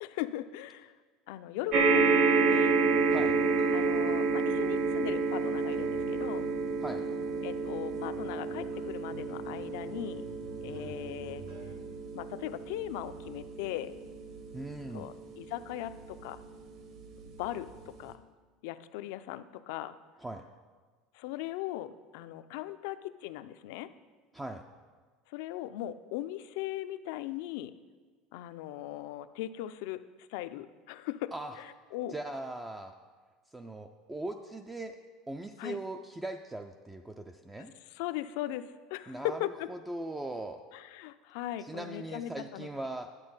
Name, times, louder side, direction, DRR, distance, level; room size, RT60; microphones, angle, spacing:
voice 1, 0.0-0.9 1.3-2.8 3.7-6.5 7.4-10.2 10.6-11.4 12.1-14.0 14.9-16.4 17.3-18.2 18.6-20.0 21.1-23.9 25.3-27.7 28.3-30.0 30.3-31.3 31.6-32.1 35.6-35.8 37.9-39.7 40.7-42.7, left 14 dB, 70° left, 12 dB, 0.5 m, -39 dB
sound 1, 1.7-16.3 17.0-17.1 17.4-17.5, right 4 dB, 40° right, 0.9 m, -29 dB
sound 2, 2.7-11.7, right 2 dB, 70° right, 1.8 m, -51 dB
voice 2, 14.5-15.1 20.2-20.4 24.3-24.6 31.3-31.6 32.1-32.9 33.5-35.0 35.3-37.7 39.1-39.4 39.7-40.6 41.6-43.1, right 2 dB, 10° right, 5 dB, 0.3 m, -39 dB
10.5 x 8.0 x 5.5 m, 1.4 s
cardioid pair, 170°, 0 cm